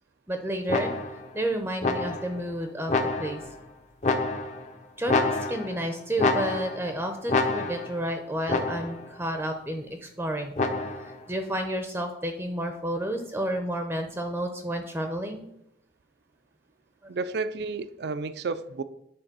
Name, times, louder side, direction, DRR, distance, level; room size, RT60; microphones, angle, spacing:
voice 1, 0.3-0.9 1.3-2.9 3.2-3.4 5.0-10.5 11.0-15.4 17.0-17.1, right 1 dB, 10° right, 5 dB, 0.6 m, -31 dB
sound 1, 0.7-1.3 1.8-2.4 2.9-3.5 4.0-4.7 5.1-5.8 6.2-6.9 7.3-8.0 8.5-9.1 10.6-11.2, left 3 dB, 40° left, 0.7 m, -27 dB
voice 2, 17.1-18.8, right 4 dB, 60° right, 13 dB, 0.4 m, -31 dB
9.1 x 3.9 x 6.0 m, 0.79 s
head